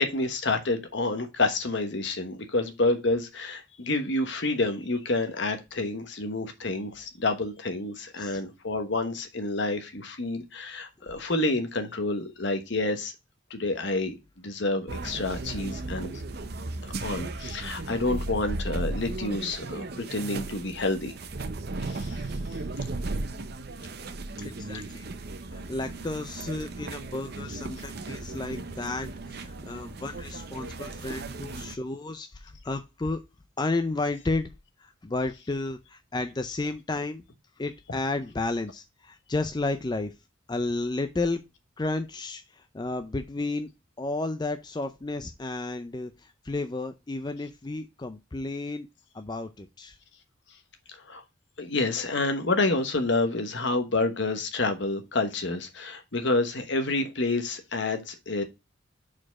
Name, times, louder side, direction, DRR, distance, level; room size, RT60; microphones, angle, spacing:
voice 1, 0.0-13.1 13.5-16.1 16.8-21.1 21.8-22.2 50.9-51.2 51.6-58.4, left 2 dB, 60° left, 1.2 m, -28 dB
sound 1, 14.9-31.7, right 2 dB, 50° right, 0.7 m, -36 dB
voice 2, 24.4-25.1 25.5-33.2 33.6-34.5 34.8-37.2 37.6-40.1 40.5-41.4 41.8-43.7 44.0-48.9 49.1-50.0, left 2 dB, 20° left, 0.4 m, -32 dB
4.8 x 4.4 x 5.8 m
head